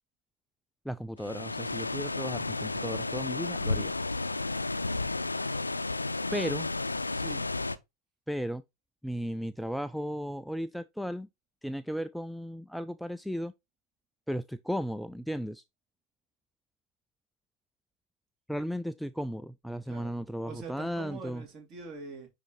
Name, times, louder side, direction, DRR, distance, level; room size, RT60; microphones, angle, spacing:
voice 1, 0.9-3.9 6.3-6.7 8.3-8.6 9.0-11.3 11.6-13.5 14.3-15.6 18.5-21.4, equal, ahead, 0.3 m, -35 dB
sound 1, 1.2-7.8, left 3 dB, 80° left, 0.5 m, -32 dB
voice 2, 7.1-7.5 19.9-20.1 20.4-22.3, right 4 dB, 35° right, 2.9 m, -44 dB
10.0 x 4.1 x 3.1 m
figure-of-eight pair, 90°, 0 cm